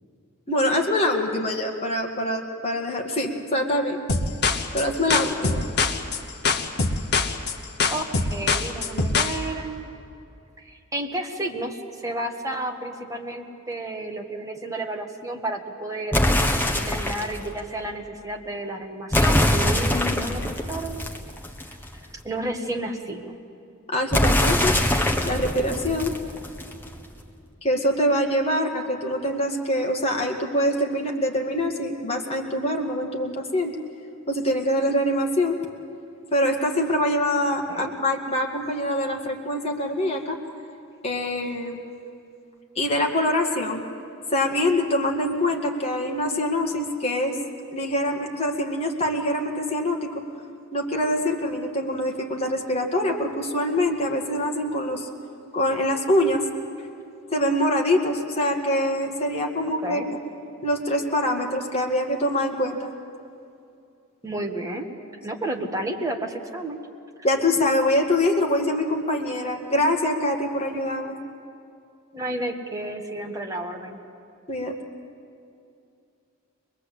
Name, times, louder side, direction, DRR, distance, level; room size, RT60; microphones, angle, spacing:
voice 1, 0.5-4.0 4.7-5.6 23.9-24.7 25.2-26.1 27.6-33.8 34.3-35.6 36.3-40.4 41.0-41.8 42.8-43.8 44.3-47.4 47.7-50.1 50.7-55.1 55.5-56.4 57.3-60.2 60.6-62.9 67.2-71.2 74.5-74.7, left 1 dB, 30° left, 1 dB, 2.0 m, -24 dB
sound 1, 4.1-9.4, left 4 dB, 50° left, 1.2 m, -23 dB
voice 2, 7.9-9.9 10.6-16.2 16.7-21.1 21.7-21.8 22.2-23.3 37.7-37.9 59.8-60.1 64.2-64.9 65.2-66.8 72.1-74.0, right 1 dB, 15° right, 2 dB, 1.6 m, -31 dB
sound 2, 16.1-17.4 19.1-21.8 24.1-26.8, left 1 dB, 10° left, 1.4 m, -23 dB
23.0 x 21.0 x 8.4 m, 2.6 s
head